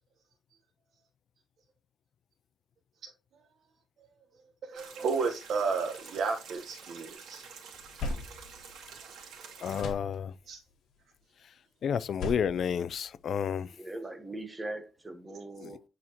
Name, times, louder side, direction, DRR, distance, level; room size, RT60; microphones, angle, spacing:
voice 1, 4.6-7.4 8.9-9.1 10.5-10.6, right 4 dB, 50° right, 1.1 m, -32 dB
sound 1, 4.7-9.8, right 6 dB, 85° right, 2.2 m, -49 dB
sound 2, 5.6-7.1 7.5-9.3 9.6-10.7 11.9-13.6, left 2 dB, 65° left, 1.7 m, -41 dB
voice 2, 9.6-10.3 11.8-13.7 15.6-15.7, left 8 dB, 50° left, 0.4 m, -31 dB
voice 3, 13.8-15.8, right 2 dB, 10° right, 1.0 m, -40 dB
8.5 x 4.4 x 2.9 m
cardioid pair, 160°, 0 cm